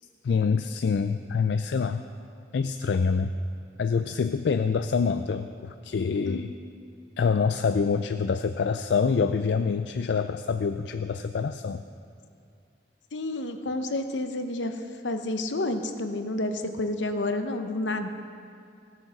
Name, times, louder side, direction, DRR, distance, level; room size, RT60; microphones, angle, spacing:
voice 1, 0.2-2.0 2.5-3.3 3.8-6.5 7.2-11.8, left 5 dB, 70° left, 9 dB, 0.4 m, -26 dB
voice 2, 13.1-14.7 15.0-18.1, left 2 dB, 85° left, 7 dB, 0.9 m, -29 dB
17.0 x 7.9 x 5.9 m, 2.4 s
head